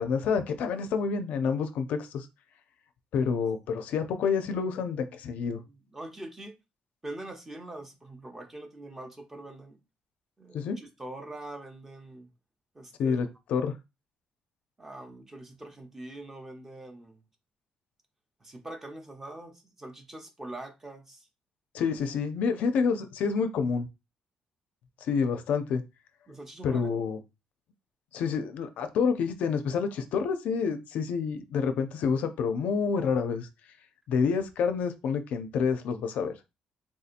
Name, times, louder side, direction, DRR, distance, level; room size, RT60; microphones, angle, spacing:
voice 1, 0.0-2.3 3.1-5.6 10.5-10.8 13.0-13.7 21.7-23.9 25.1-25.8 26.6-27.2 28.1-33.5 34.1-36.3, left 5 dB, 65° left, 0.4 m, -28 dB
voice 2, 5.4-6.5 7.0-9.8 10.4-12.3 12.7-13.3 14.8-17.2 18.4-21.3 26.3-26.9, right 1 dB, 15° right, 0.5 m, -43 dB
3.5 x 2.7 x 2.4 m
cardioid pair, 150°, 3 cm